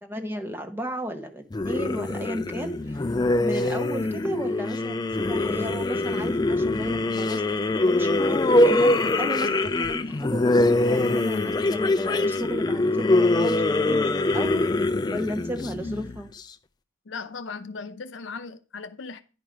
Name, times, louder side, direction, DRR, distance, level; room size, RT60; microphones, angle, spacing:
voice 1, 0.0-14.7 15.1-16.3, equal, 10° right, 0.8 m, -34 dB
sound 1, 1.5-16.4, left 2 dB, 20° left, 0.3 m, -23 dB
voice 2, 17.1-19.2, left 4 dB, 70° left, 0.6 m, -37 dB
10.0 x 4.8 x 4.9 m
head